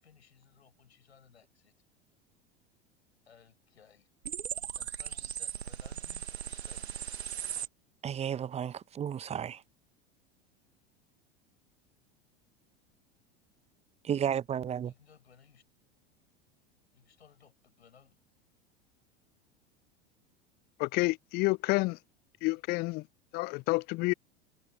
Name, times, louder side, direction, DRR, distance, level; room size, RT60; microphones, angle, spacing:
voice 1, 0.0-1.7 3.2-4.1 4.7-7.1 14.8-15.6 16.9-18.2, left 7 dB, 80° left, 6.7 m, -61 dB
sound 1, 4.2-7.7, right 9 dB, 75° right, 1.3 m, -38 dB
voice 2, 8.0-9.6 14.0-14.9, right 9 dB, 20° right, 0.7 m, -33 dB
voice 3, 20.8-22.0 22.4-23.0 23.3-24.1, left 24 dB, 30° left, 0.4 m, -29 dB
figure-of-eight pair, 80°, 32 cm